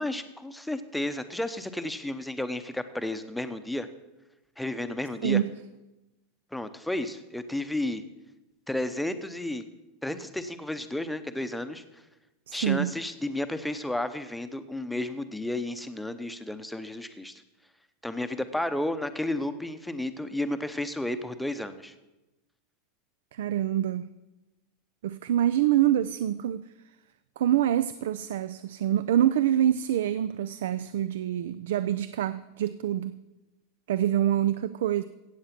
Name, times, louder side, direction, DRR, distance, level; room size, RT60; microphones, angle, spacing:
voice 1, 0.0-3.9 4.6-5.4 6.5-8.0 8.7-9.6 10.0-12.0 12.5-17.4 18.0-21.9, left 1 dB, 5° left, 0.7 m, -32 dB
voice 2, 12.5-12.9 23.3-24.1 25.0-26.7 27.4-33.2 33.9-35.0, right 11 dB, 85° right, 0.4 m, -26 dB
16.0 x 8.0 x 5.9 m
supercardioid pair, 150°, 0 cm